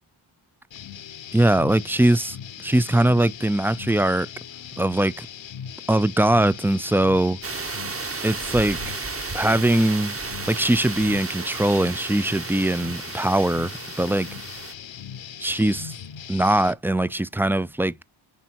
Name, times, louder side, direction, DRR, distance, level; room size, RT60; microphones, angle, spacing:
sound 1, 0.7-16.7, left 9 dB, 65° left, 1.0 m, -39 dB
voice 1, 1.3-4.3 4.8-5.3 5.9-7.4 8.2-8.8 9.3-10.2 10.5-14.3 15.4-16.0 16.3-17.9, right 1 dB, 5° right, 0.4 m, -21 dB
sound 2, 7.4-14.7, right 4 dB, 25° right, 0.9 m, -33 dB
10.0 x 3.6 x 4.5 m
cardioid pair, 50°, 49 cm